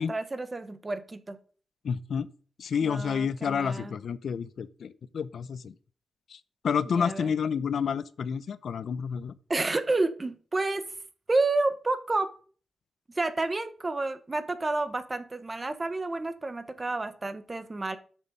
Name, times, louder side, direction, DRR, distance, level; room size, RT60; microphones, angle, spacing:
voice 1, 0.0-1.4 2.8-4.0 6.9-7.3 9.5-10.8 11.3-12.3 13.1-18.0, right 2 dB, 25° right, 0.9 m, -30 dB
voice 2, 1.8-2.3 2.6-5.7 6.3-9.4, left 6 dB, 70° left, 0.6 m, -30 dB
6.9 x 6.4 x 5.3 m
cardioid pair, 80°, 0 cm